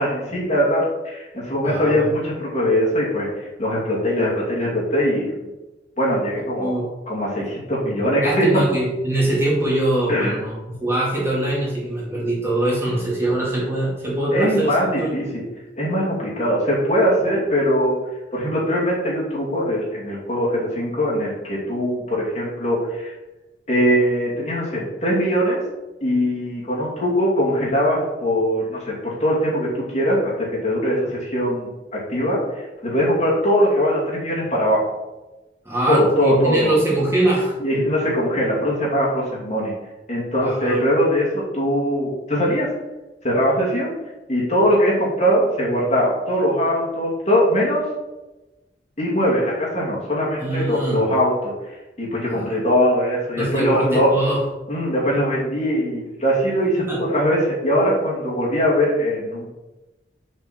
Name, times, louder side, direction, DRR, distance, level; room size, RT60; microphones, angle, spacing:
voice 1, 0.0-3.3 3.6-5.4 6.0-6.7 7.1-8.6 10.1-10.3 14.3-15.4 15.8-18.0 18.3-23.1 23.7-25.6 26.0-34.8 35.9-36.8 37.6-39.7 40.1-42.7 43.2-43.9 44.3-47.8 49.0-54.1 54.7-59.5, equal, 40° left, -6 dB, 2.7 m, -21 dB
voice 2, 1.6-2.0 6.6-6.9 8.2-15.1 35.6-37.6 40.4-40.8 50.4-51.1 52.3-52.5 53.4-54.4 56.9-57.0, right 1 dB, 15° right, -6 dB, 2.2 m, -23 dB
6.5 x 6.2 x 4.4 m, 1.1 s
head